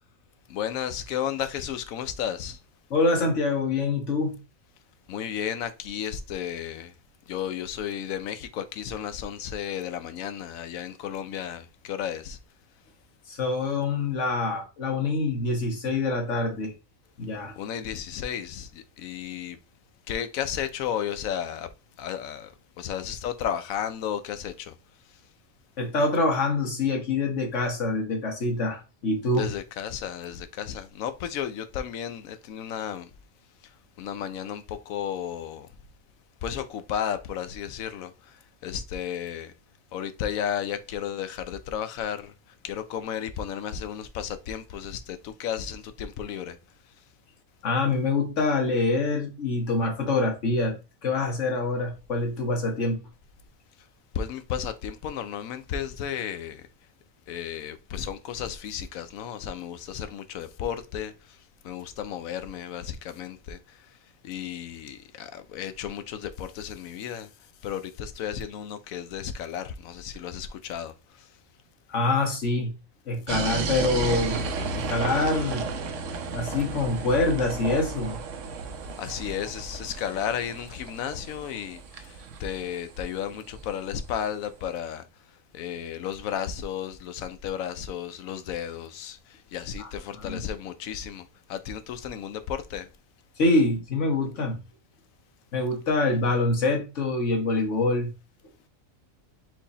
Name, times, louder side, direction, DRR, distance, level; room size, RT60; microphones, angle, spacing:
voice 1, 0.5-2.6 5.1-6.9 7.3-12.4 17.6-19.6 20.1-21.7 22.0-24.7 25.1-25.2 29.4-33.1 33.6-35.7 36.4-39.5 39.9-42.3 42.6-46.6 53.8-53.9 54.1-56.7 57.3-64.0 64.2-71.4 79.0-92.9, left 9 dB, 85° left, 1.0 m, -33 dB
voice 2, 2.9-4.4 13.3-16.7 17.2-17.5 25.8-29.5 47.6-50.8 51.0-53.0 71.9-72.7 73.1-74.4 74.7-75.7 76.3-78.2 89.8-89.9 90.1-90.4 93.4-94.6 95.5-98.1, left 2 dB, 65° left, 1.6 m, -25 dB
sound 1, 73.3-84.0, right 4 dB, 70° right, 1.0 m, -33 dB
4.6 x 2.7 x 4.1 m
omnidirectional pair, 1.4 m